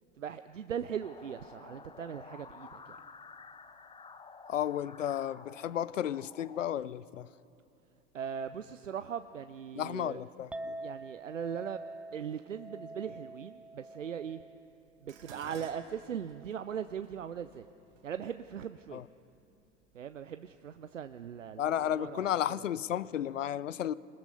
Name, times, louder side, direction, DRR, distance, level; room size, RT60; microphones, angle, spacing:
voice 1, 0.2-3.0 8.1-10.2 10.8-11.8 12.1-14.4 15.0-17.7 18.0-19.0 19.9-21.6 22.0-22.3, right 8 dB, 85° right, 0.6 m, -39 dB
sound 1, 1.0-6.6, left 5 dB, 15° left, 0.8 m, -51 dB
voice 2, 4.5-7.3 9.8-10.8 18.9-19.1 21.6-23.9, left 10 dB, 80° left, 0.5 m, -33 dB
Chink clink, 10.5-16.8, right 1 dB, 5° right, 0.4 m, -47 dB
Dishes pots and pans, 15.1-19.4 20.3-20.7 21.1-22.0 22.2-22.3, right 6 dB, 70° right, 2.0 m, -55 dB
24.5 x 20.0 x 5.6 m
figure-of-eight pair, 75°, 37 cm